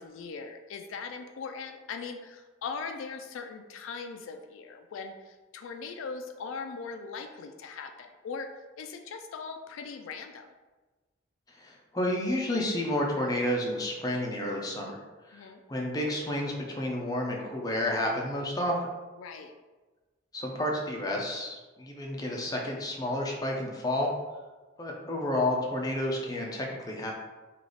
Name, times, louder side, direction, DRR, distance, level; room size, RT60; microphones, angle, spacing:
voice 1, 0.0-8.5 8.8-10.5 15.3-15.6 19.2-19.5, left 5 dB, 75° left, 5 dB, 0.3 m, -40 dB
voice 2, 11.5-15.0 15.3-18.8 20.3-24.1 24.8-27.1, left 1 dB, 20° left, -1 dB, 0.4 m, -30 dB
3.3 x 2.4 x 3.8 m, 1.2 s
head